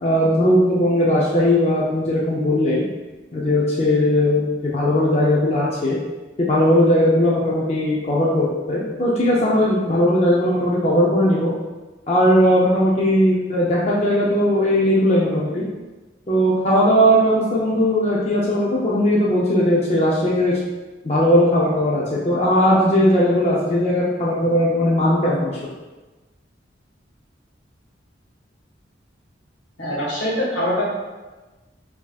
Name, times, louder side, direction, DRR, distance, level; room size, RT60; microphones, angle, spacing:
voice 1, 0.0-2.8 3.3-6.0 6.4-11.5 12.1-15.6 16.3-20.6 21.0-25.6, equal, 35° left, -6 dB, 0.5 m, -18 dB
voice 2, 29.8-30.8, left 1 dB, 80° left, -7 dB, 1.5 m, -23 dB
5.0 x 2.7 x 2.3 m, 1.2 s
head